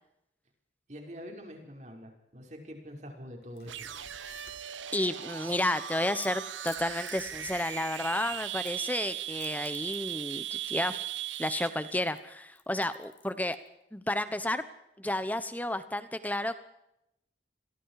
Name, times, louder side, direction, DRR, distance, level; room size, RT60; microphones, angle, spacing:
voice 1, 0.9-4.1, equal, 40° right, 2 dB, 5.5 m, -45 dB
sound 1, 3.4-5.1 6.6-8.4, left 3 dB, 55° left, 5.5 m, -56 dB
sound 2, 3.7-11.9, right 12 dB, 85° right, 0.8 m, -38 dB
voice 2, 4.9-11.0 11.4-13.6 13.9-14.6 15.0-16.6, left 1 dB, 10° left, 12 dB, 1.1 m, -31 dB
Crackle / Crack, 5.5-13.7, left 12 dB, 80° left, 3.6 m, -55 dB
29.0 x 22.0 x 4.9 m, 0.82 s
head